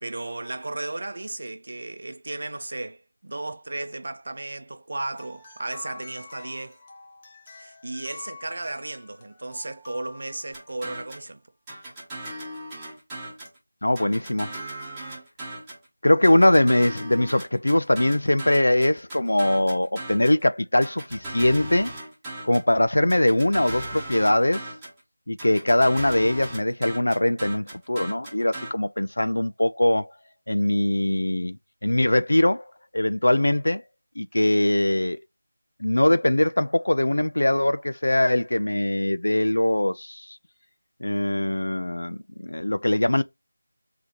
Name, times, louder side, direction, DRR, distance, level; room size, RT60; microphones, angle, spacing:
voice 1, 0.0-6.8 7.6-11.4, right 2 dB, 50° right, 0.6 m, -34 dB
sound 1, 5.1-11.1 13.5-13.6 14.5-14.6, left 3 dB, 15° left, 0.7 m, -47 dB
sound 2, 10.5-11.3 11.7-13.6 14.0-15.9 16.2-20.4 20.8-22.7 23.1-25.0 25.4-28.7, right 1 dB, 5° right, 1.1 m, -37 dB
voice 2, 13.8-14.5 16.0-21.9 22.4-24.7 25.3-30.1 30.5-31.6 31.8-32.6 32.9-33.8 34.2-35.2 35.8-40.4 41.0-43.2, left 1 dB, 85° left, 0.5 m, -22 dB
4.0 x 2.8 x 4.6 m
figure-of-eight pair, 175°, 0 cm